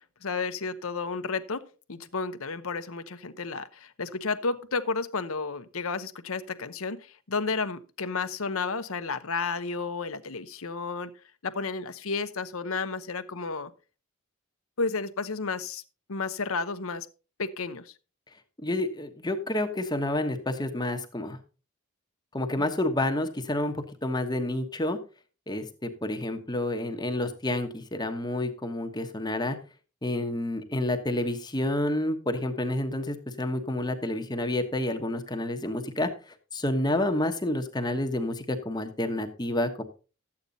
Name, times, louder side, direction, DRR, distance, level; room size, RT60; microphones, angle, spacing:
voice 1, 0.2-1.6 1.9-11.1 11.4-13.7 14.8-15.8 16.1-17.1 17.4-17.9 22.6-22.7, left 4 dB, 75° left, 11 dB, 0.9 m, -32 dB
voice 2, 18.6-21.4 22.3-25.0 25.5-29.6 30.0-39.8, left 1 dB, 20° left, 6 dB, 1.1 m, -29 dB
13.0 x 8.7 x 4.0 m, 0.34 s
head